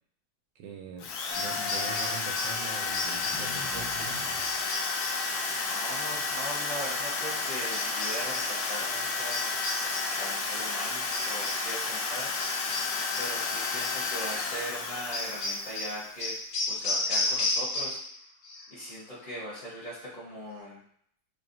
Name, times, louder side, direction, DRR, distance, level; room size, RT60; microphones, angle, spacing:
voice 1, 0.6-4.4, right 5 dB, 75° right, 2 dB, 1.2 m, -43 dB
Drill, 1.0-16.2, left 4 dB, 75° left, 1.3 m, -32 dB
sound 1, 1.3-2.7 2.9-3.6 4.4-5.3 7.7-8.6 9.3-10.2 11.1-11.7 12.4-13.4 13.8-14.1 15.1-18.2 18.4-18.9, left 2 dB, 55° left, 0.9 m, -33 dB
sound 2, 1.3-9.6 10.9-11.0, left 6 dB, 10° left, 0.8 m, -46 dB
voice 2, 5.6-9.4 10.1-12.8 13.2-16.3 16.7-18.0 18.7-20.8, equal, 30° left, -8 dB, 1.2 m, -40 dB
4.7 x 2.9 x 2.6 m, 0.64 s
omnidirectional pair, 2.1 m